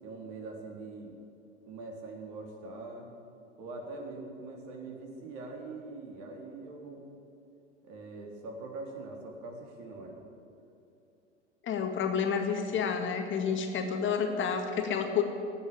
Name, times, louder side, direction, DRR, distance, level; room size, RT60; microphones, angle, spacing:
voice 1, 0.0-1.1 1.7-3.1 3.6-7.0 7.8-10.2, right 3 dB, 50° right, 1 dB, 3.4 m, -43 dB
voice 2, 11.6-15.2, left 6 dB, 35° left, 4 dB, 1.8 m, -30 dB
17.0 x 7.3 x 9.9 m, 2.7 s
hypercardioid pair, 90°, 35 cm